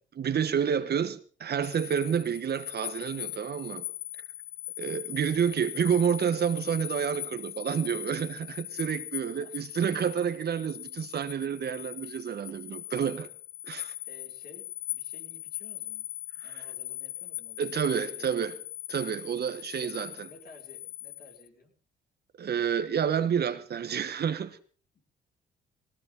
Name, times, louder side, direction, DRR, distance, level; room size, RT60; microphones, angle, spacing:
voice 1, 0.1-3.8 4.8-13.3 13.7-13.9 16.4-16.6 17.6-18.6 18.9-20.3 22.4-24.6, right 8 dB, 55° right, 1.5 m, -29 dB
sound 1, 1.6-21.5, left 13 dB, 80° left, 0.7 m, -40 dB
voice 2, 9.2-9.6 14.0-16.1 16.3-18.3 18.6-18.7 19.7-21.7 24.9-25.0, left 3 dB, 50° left, 5.7 m, -54 dB
18.5 x 18.0 x 3.9 m
cardioid pair, 90°, 20 cm